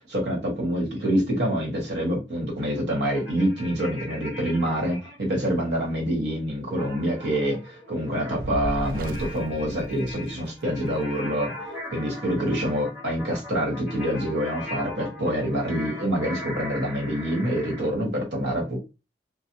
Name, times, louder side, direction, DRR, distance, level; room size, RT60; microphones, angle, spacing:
voice 1, 0.1-11.5 11.9-18.8, equal, 75° right, 1.4 m, -26 dB
sound 1, 3.1-5.2 6.8-17.9, left 1 dB, 15° right, 1.1 m, -40 dB
Fire, 8.3-10.8, right 1 dB, 50° right, 0.3 m, -34 dB
3.2 x 2.2 x 2.8 m
head